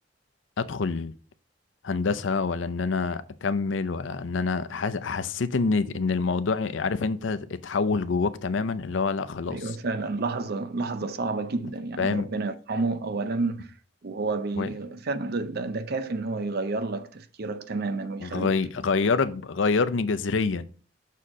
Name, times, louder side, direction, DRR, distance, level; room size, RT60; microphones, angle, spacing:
voice 1, 0.6-1.1 1.8-9.8 12.0-12.3 14.6-14.7 18.2-20.6, left 4 dB, 80° left, 0.6 m, -26 dB
voice 2, 9.5-13.7 14.0-18.5, right 3 dB, 55° right, 0.6 m, -30 dB
6.4 x 4.3 x 4.8 m
head